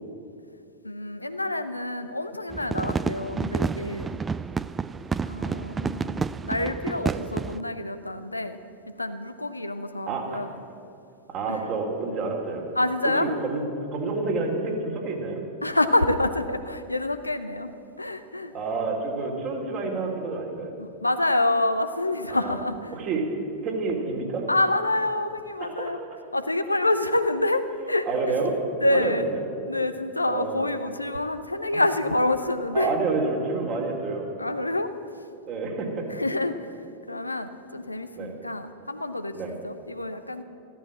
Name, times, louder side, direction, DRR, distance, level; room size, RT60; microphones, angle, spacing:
voice 1, 0.8-4.2 5.2-8.6 9.0-10.6 11.5-11.6 12.8-13.4 15.6-18.5 20.8-22.9 24.5-26.0 26.3-28.1 28.8-29.3 29.7-32.9 34.4-34.9 36.1-36.8 37.1-40.4, left 2 dB, 85° left, 9 dB, 0.7 m, -27 dB
sound 1, 2.5-7.6, right 5 dB, 15° right, 0.3 m, -30 dB
voice 2, 10.1-10.5 11.3-12.7 13.0-13.6 13.9-15.4 18.5-20.8 22.3-22.6 22.9-23.3 23.6-24.4 25.6-25.9 28.1-28.6 28.9-29.4 30.3-30.6 31.7-31.8 32.7-34.3 35.5-36.1 38.2-38.3 39.3-39.5, right 3 dB, 35° right, 1 dB, 2.9 m, -29 dB
14.5 x 13.0 x 7.5 m, 2.6 s
figure-of-eight pair, 90°, 0 cm